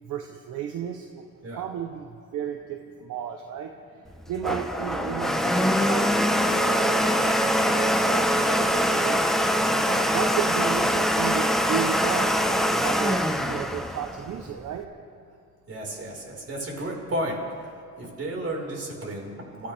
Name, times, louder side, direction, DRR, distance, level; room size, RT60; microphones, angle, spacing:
voice 1, 0.0-1.2 1.5-3.7 4.3-9.2 9.9-13.2 13.5-14.9, right 9 dB, 80° right, 4 dB, 0.9 m, -33 dB
Domestic sounds home sounds, 4.1-14.8, equal, ahead, 1.1 m, -23 dB
voice 2, 15.7-17.4 17.9-19.7, right 1 dB, 50° right, -2 dB, 5.0 m, -33 dB
26.0 x 14.5 x 3.5 m, 2.3 s
cardioid pair, 90°, 30 cm